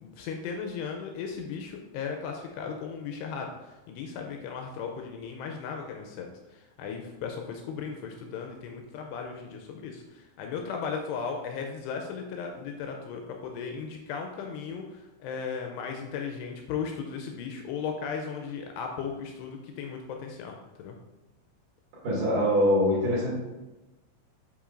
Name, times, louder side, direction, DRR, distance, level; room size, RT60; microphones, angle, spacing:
voice 1, 0.0-21.0, left 6 dB, 85° left, 2 dB, 2.4 m, -36 dB
voice 2, 22.0-23.4, equal, 50° right, -7 dB, 3.6 m, -23 dB
10.0 x 4.5 x 2.5 m, 1.1 s
omnidirectional pair, 5.3 m